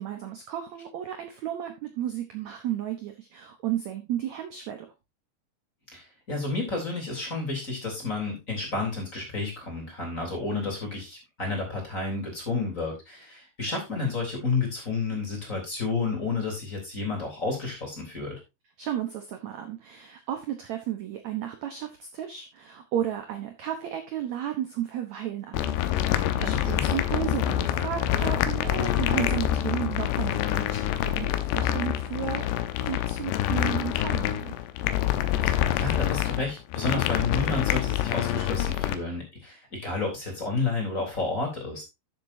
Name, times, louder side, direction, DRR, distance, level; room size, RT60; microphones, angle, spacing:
voice 1, 0.0-4.9 18.8-25.7 26.0-30.8 31.0-32.4 32.8-34.5, right 11 dB, 75° right, 6 dB, 1.6 m, -33 dB
voice 2, 5.9-18.4 26.4-26.9 35.7-41.8, left 3 dB, 20° left, 0 dB, 3.5 m, -31 dB
sound 1, 25.5-39.0, left 12 dB, 90° left, 3.0 m, -26 dB
12.5 x 7.4 x 2.7 m, 0.23 s
omnidirectional pair, 4.8 m